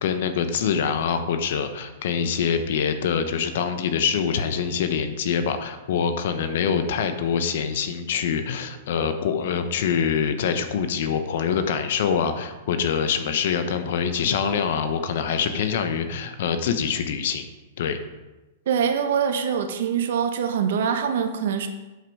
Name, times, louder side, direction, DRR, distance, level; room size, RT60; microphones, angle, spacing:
voice 1, 0.0-17.4 17.8-18.0, left 7 dB, 65° left, 9 dB, 1.0 m, -25 dB
voice 2, 18.7-21.7, right 7 dB, 70° right, 7 dB, 1.1 m, -24 dB
8.1 x 7.5 x 4.7 m, 1.1 s
hypercardioid pair, 130°, 0 cm